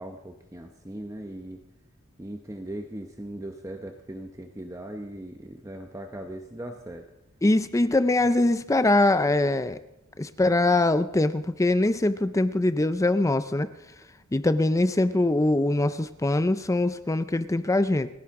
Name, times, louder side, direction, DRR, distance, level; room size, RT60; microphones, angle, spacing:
voice 1, 0.0-1.6 2.2-7.1, right 1 dB, 15° right, 4 dB, 0.8 m, -39 dB
voice 2, 7.4-9.8 10.2-13.7 14.3-18.1, left 2 dB, 15° left, 12 dB, 0.5 m, -23 dB
29.5 x 10.5 x 3.7 m, 0.91 s
head